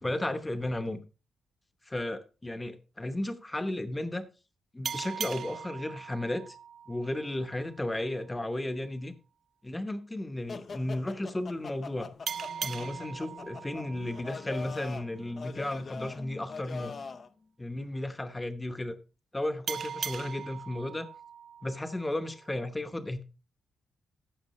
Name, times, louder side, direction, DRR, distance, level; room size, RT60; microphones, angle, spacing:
voice 1, 0.0-1.0 1.9-4.3 4.7-6.6 6.9-9.1 9.6-12.1 12.6-16.9 17.6-18.9 19.3-21.1 21.6-23.2, left 1 dB, 10° left, 0.9 m, -34 dB
sound 1, 4.8-8.1 12.3-15.5 19.7-22.6, right 7 dB, 55° right, 0.4 m, -40 dB
sound 2, 10.5-17.3, left 4 dB, 40° left, 0.6 m, -43 dB
15.0 x 6.1 x 3.0 m
wide cardioid pair, 140°, 0 cm